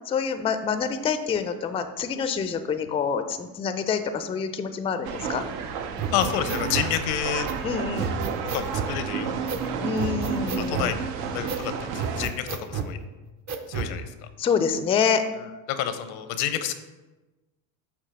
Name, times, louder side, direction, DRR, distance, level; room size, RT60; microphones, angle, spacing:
voice 1, 0.1-5.4 7.6-8.2 9.8-10.9 14.4-15.2, left 6 dB, 15° left, 9 dB, 0.3 m, -26 dB
sound 1, 5.0-12.3, right 6 dB, 80° right, 0.7 m, -31 dB
voice 2, 6.0-7.5 8.5-9.5 10.6-13.0 13.7-14.1 15.7-16.7, left 10 dB, 85° left, 10 dB, 0.7 m, -29 dB
sound 2, 6.0-6.9 7.5-7.6 8.0-8.9 9.5-9.7 10.0-10.9 11.5-11.7 12.0-12.9 13.5-13.9, right 6 dB, 40° right, 0.6 m, -31 dB
6.8 x 2.8 x 5.1 m, 1.1 s
supercardioid pair, 85°, 43 cm